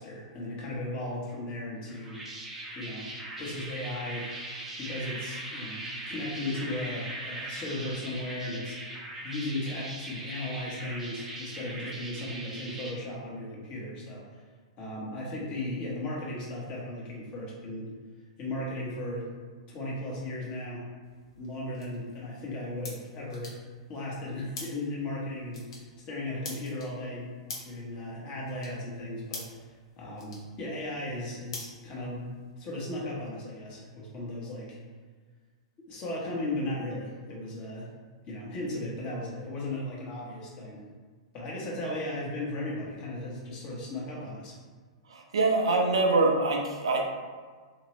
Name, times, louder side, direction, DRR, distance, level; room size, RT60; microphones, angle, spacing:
voice 1, 0.0-2.2 2.8-3.1 3.4-4.3 4.8-5.8 6.1-8.8 9.2-14.4 14.8-17.9 18.4-19.2 19.7-20.8 21.4-23.5 23.9-25.6 26.1-27.3 27.6-29.6 30.0-32.3 32.6-34.8 35.9-37.9 38.3-40.8 41.3-44.6, left 1 dB, 35° left, -4 dB, 1.1 m, -36 dB
sound 1, 1.9-12.9, right 1 dB, 10° right, 0.6 m, -40 dB
sound 2, 21.0-32.5, left 3 dB, 65° left, 0.9 m, -47 dB
voice 2, 45.1-47.1, right 3 dB, 75° right, 1 dB, 0.5 m, -24 dB
2.9 x 2.9 x 3.0 m, 1.5 s
hypercardioid pair, 105°, 3 cm